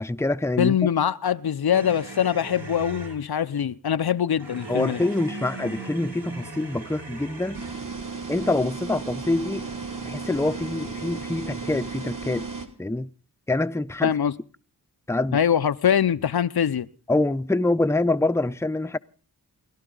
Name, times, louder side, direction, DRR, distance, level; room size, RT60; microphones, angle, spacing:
voice 1, 0.0-0.7 4.7-7.7 8.3-9.7 10.1-12.5 12.8-13.1 13.5-14.2 15.1-15.4 17.1-19.0, left 2 dB, 5° left, 0.7 m, -25 dB
voice 2, 0.6-5.0 14.0-14.3 15.3-16.9, left 8 dB, 65° left, 0.7 m, -23 dB
sound 1, 1.7-3.2 4.4-7.9 8.8-11.8, right 3 dB, 80° right, 5.1 m, -40 dB
sound 2, 7.5-12.7, right 4 dB, 50° right, 3.0 m, -35 dB
29.0 x 12.0 x 3.9 m
cardioid pair, 40°, 40 cm